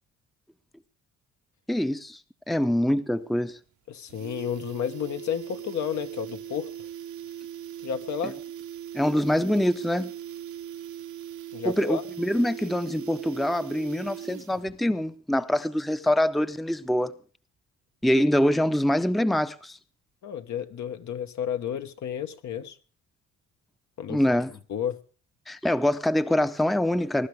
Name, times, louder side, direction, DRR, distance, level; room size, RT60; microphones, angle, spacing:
voice 1, 1.7-2.2 2.5-3.6 8.2-8.3 8.9-10.1 11.7-17.1 18.0-19.8 24.1-24.5 25.5-27.3, left 1 dB, ahead, 0.7 m, -24 dB
sound 1, 3.2-3.3 3.6-3.7 4.0-14.8 15.1-15.2, right 10 dB, 75° right, 1.1 m, -40 dB
voice 2, 3.9-6.7 7.8-8.4 11.5-12.0 20.2-22.8 24.0-24.2 24.7-25.0, left 8 dB, 70° left, 1.5 m, -31 dB
21.5 x 12.0 x 3.5 m
cardioid pair, 90°, 30 cm